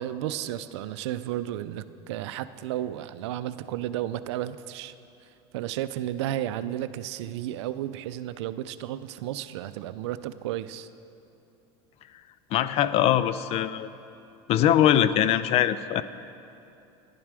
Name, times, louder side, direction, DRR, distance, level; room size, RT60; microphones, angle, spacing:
voice 1, 0.0-5.0 5.2-10.9, right 12 dB, 85° right, 13 dB, 0.4 m, -33 dB
voice 2, 12.5-13.9 14.5-16.0, left 11 dB, 45° left, 15 dB, 0.4 m, -22 dB
11.0 x 10.5 x 4.8 m, 2.7 s
supercardioid pair, 120°, 14 cm